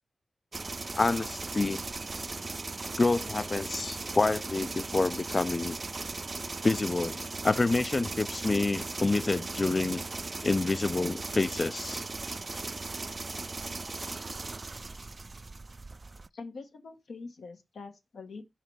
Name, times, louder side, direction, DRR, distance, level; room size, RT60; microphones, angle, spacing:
sound 1, 0.5-16.3, right 3 dB, 45° right, 0.3 m, -38 dB
voice 1, 0.9-1.8 3.0-5.8 6.6-10.0 10.4-12.1, left 3 dB, 45° left, 0.4 m, -28 dB
voice 2, 16.3-18.4, left 4 dB, 85° left, 1.2 m, -44 dB
5.8 x 5.6 x 4.6 m
cardioid pair, 55°, 0 cm